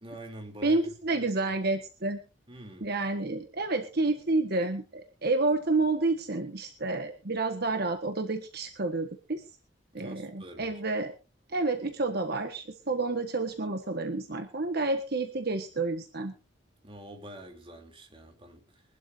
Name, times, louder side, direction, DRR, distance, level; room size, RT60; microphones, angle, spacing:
voice 1, 0.0-1.5 2.5-2.9 9.9-10.8 16.8-18.8, right 1 dB, 30° right, 2.9 m, -46 dB
voice 2, 0.6-2.2 2.8-9.4 9.9-11.1 11.5-16.3, right 3 dB, 55° right, 1.4 m, -29 dB
23.5 x 12.0 x 2.6 m
head